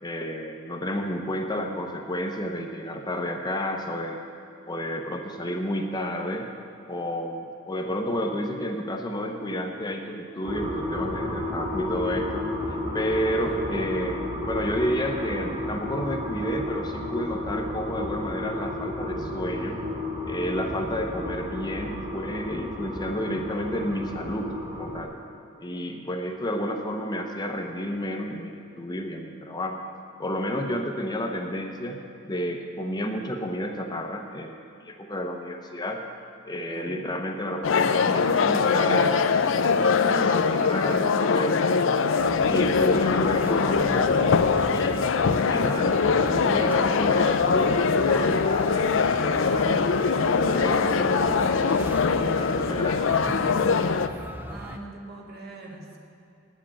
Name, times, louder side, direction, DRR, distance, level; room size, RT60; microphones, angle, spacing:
voice 1, 0.0-4.2 4.7-6.5 6.9-19.8 20.2-24.5 24.8-25.1 25.6-29.8 30.2-34.6 34.8-36.0 36.4-42.1 42.5-44.3 44.7-45.1 45.5-48.7 49.2-53.7, equal, 20° left, 3 dB, 0.7 m, -31 dB
sound 1, 10.4-25.0, left 1 dB, 30° right, 2.3 m, -32 dB
voice 2, 36.7-37.0 54.5-56.0, right 2 dB, 55° right, -1 dB, 1.7 m, -43 dB
sound 2, 37.6-54.1, left 5 dB, 70° left, 0.5 m, -22 dB
sound 3, 42.2-54.8, equal, 10° right, 0.5 m, -38 dB
9.0 x 7.5 x 8.6 m, 2.7 s
head